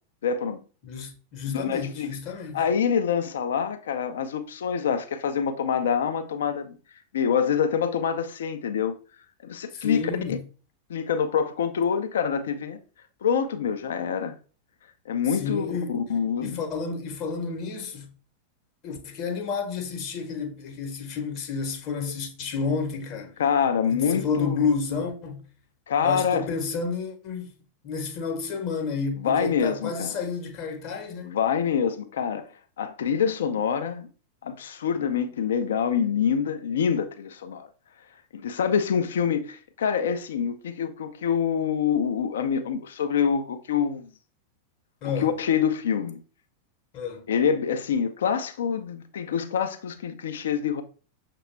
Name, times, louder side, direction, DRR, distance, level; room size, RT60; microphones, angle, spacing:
voice 1, 0.2-0.6 1.5-2.1 2.5-6.8 7.1-9.0 9.4-10.4 10.9-12.8 13.2-14.3 15.1-16.6 23.4-24.6 25.9-26.5 29.2-30.2 31.2-32.5 32.8-34.1 34.4-37.7 38.3-44.1 45.2-46.2 47.3-50.8, left 7 dB, 60° left, 0.4 m, -26 dB
voice 2, 0.8-2.6 9.7-10.4 15.3-15.9 16.4-18.1 18.8-23.4 23.9-25.4 26.0-27.5 27.8-31.3 45.0-45.4 46.9-47.3, left 5 dB, 40° left, 0.8 m, -30 dB
6.3 x 2.2 x 3.1 m
figure-of-eight pair, 90°, 0 cm